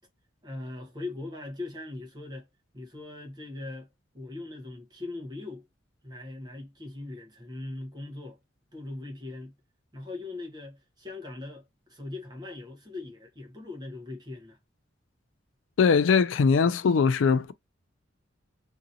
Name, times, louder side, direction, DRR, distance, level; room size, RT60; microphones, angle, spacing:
voice 1, 0.4-2.5 2.7-5.7 6.0-8.4 8.7-9.5 9.9-14.6, left 2 dB, 20° right, 1.0 m, -40 dB
voice 2, 15.8-17.5, left 5 dB, 85° left, 0.4 m, -21 dB
2.9 x 2.7 x 2.5 m
head